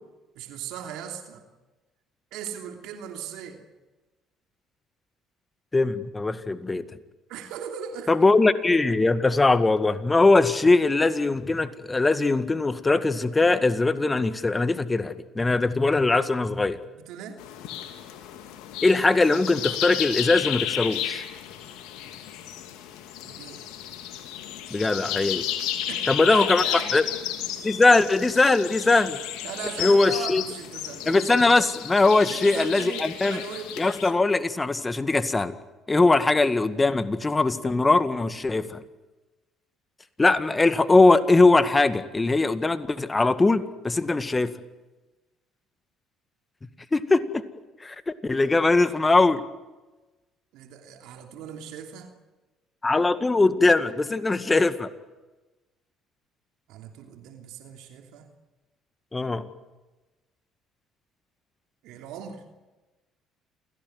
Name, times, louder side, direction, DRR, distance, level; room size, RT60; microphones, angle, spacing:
voice 1, 0.3-1.4 2.3-3.6 7.3-8.1 16.9-17.4 23.2-23.6 25.9-26.9 29.4-31.3 32.2-33.7 50.5-52.1 54.1-54.2 56.7-58.3 61.8-62.4, right 8 dB, 75° right, 4 dB, 3.0 m, -38 dB
voice 2, 5.7-6.8 8.1-16.8 18.8-21.2 24.7-25.4 26.1-27.0 27.6-29.2 29.8-30.4 31.1-33.4 33.8-35.5 35.9-38.8 40.2-44.5 46.9-47.4 47.8-49.4 52.8-54.9 59.1-59.5, left 3 dB, 20° left, 11 dB, 1.9 m, -21 dB
sound 1, 17.4-34.1, left 11 dB, 75° left, 2.8 m, -33 dB
28.5 x 17.0 x 9.6 m, 1.2 s
hypercardioid pair, 60°, 0 cm